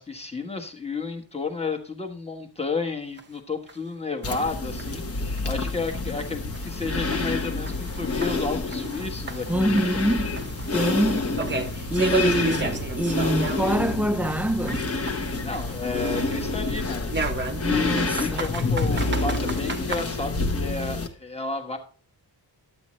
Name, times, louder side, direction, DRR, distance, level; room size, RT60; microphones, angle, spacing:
voice 1, 0.0-10.1 15.4-21.8, left 4 dB, 15° left, 1.3 m, -32 dB
sound 1, 3.2-3.3 3.7-3.8 4.2-4.3 4.8-4.9 5.4-5.5 5.9-6.0 6.5-9.0 9.3-13.9 14.2-16.3 17.1-20.0, right 4 dB, 25° right, 0.9 m, -33 dB
sound 2, 4.2-21.1, left 3 dB, 35° left, 1.1 m, -28 dB
voice 2, 9.5-10.3 10.7-11.4 11.9-14.9 17.6-18.5, equal, 5° right, 0.6 m, -25 dB
11.5 x 8.6 x 3.1 m
wide cardioid pair, 160°, 44 cm